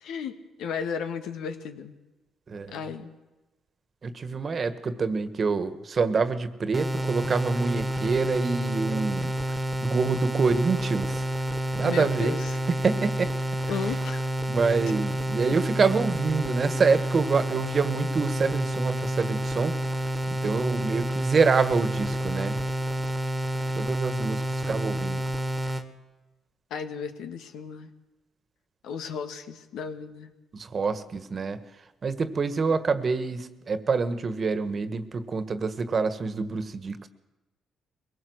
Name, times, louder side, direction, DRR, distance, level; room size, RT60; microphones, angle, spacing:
voice 1, 0.0-1.9 2.7-3.1 11.8-12.5 13.7-14.3 26.7-27.9 28.8-30.3, left 6 dB, 85° left, 7 dB, 1.9 m, -34 dB
voice 2, 4.0-9.3 9.8-11.2 11.8-12.4 12.7-13.3 14.5-19.8 20.4-22.6 23.7-25.2 30.5-31.6 32.0-37.1, right 4 dB, 40° right, 12 dB, 1.6 m, -26 dB
sound 1, 6.7-25.8, right 1 dB, 10° right, 1.8 m, -29 dB
22.5 x 17.5 x 8.0 m, 1.1 s
cardioid pair, 90°, 0 cm